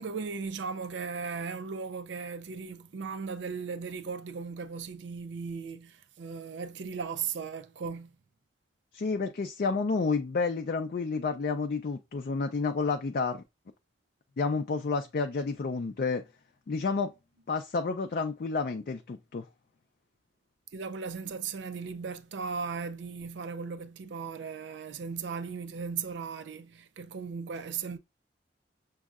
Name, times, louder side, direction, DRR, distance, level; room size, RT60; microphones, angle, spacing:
voice 1, 0.0-8.2 20.7-28.0, right 5 dB, 85° right, 0.4 m, -37 dB
voice 2, 8.9-13.4 14.4-16.2 16.7-17.1 17.5-19.5, left 4 dB, 55° left, 0.4 m, -30 dB
6.2 x 2.7 x 2.4 m
head